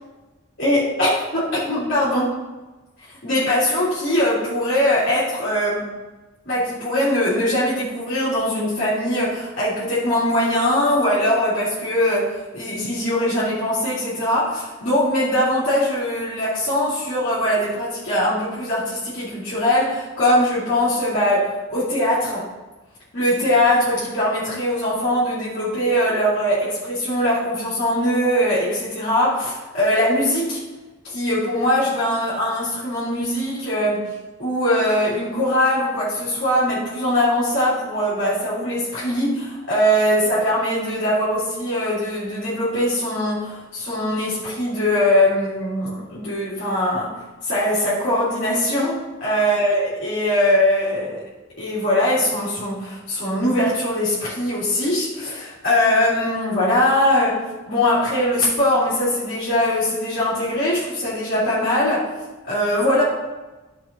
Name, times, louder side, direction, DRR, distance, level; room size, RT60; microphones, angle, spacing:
voice 1, 0.6-2.4 3.2-5.9 6.4-22.4 23.1-30.6 31.0-34.1 34.4-47.1 47.4-51.2 51.6-62.1 62.4-63.0, left 1 dB, 55° left, -11 dB, 3.3 m, -21 dB
14.5 x 6.2 x 3.0 m, 1.2 s
head